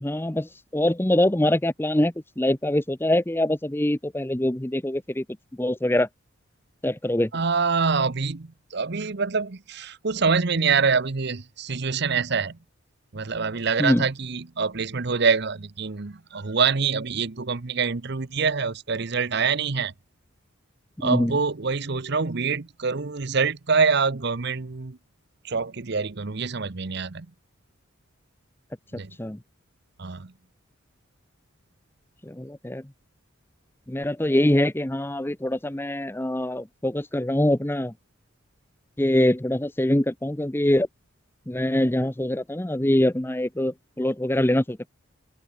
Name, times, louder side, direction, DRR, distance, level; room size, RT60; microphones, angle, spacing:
voice 1, 0.0-5.2 5.6-6.1 6.8-7.3 13.8-14.0 21.0-21.4 29.2-29.4 32.2-32.8 33.9-37.9 39.0-40.9 41.5-44.9, left 1 dB, 10° left, 0.7 m, -24 dB
voice 2, 7.3-12.6 13.1-19.9 21.0-25.0 25.4-27.3 28.9-29.1 30.0-30.3, right 5 dB, 55° right, 0.9 m, -25 dB
head